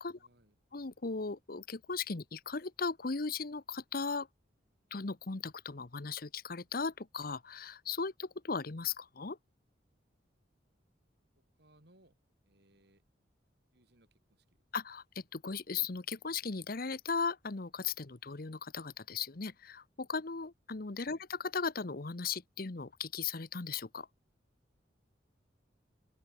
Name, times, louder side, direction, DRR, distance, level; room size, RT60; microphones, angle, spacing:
voice 1, 0.1-0.6 11.4-12.2 12.5-13.0 13.7-14.6 21.0-21.2, right 1 dB, 60° right, 5.4 m, -67 dB
voice 2, 0.7-4.3 4.9-9.4 14.7-24.1, left 5 dB, 50° left, 1.0 m, -37 dB
open air
head